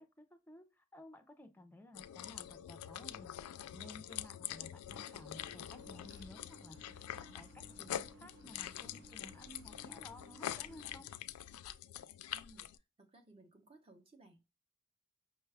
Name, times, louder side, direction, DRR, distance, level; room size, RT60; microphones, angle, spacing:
voice 1, 0.0-11.1, left 1 dB, 10° left, 7 dB, 0.4 m, -56 dB
sound 1, 1.9-12.8, left 11 dB, 90° left, 0.3 m, -45 dB
sound 2, 4.9-11.0, right 1 dB, 60° right, 0.8 m, -59 dB
voice 2, 12.3-12.7 13.0-14.4, right 1 dB, 25° right, 5 dB, 0.7 m, -61 dB
5.6 x 2.2 x 3.3 m, 0.28 s
head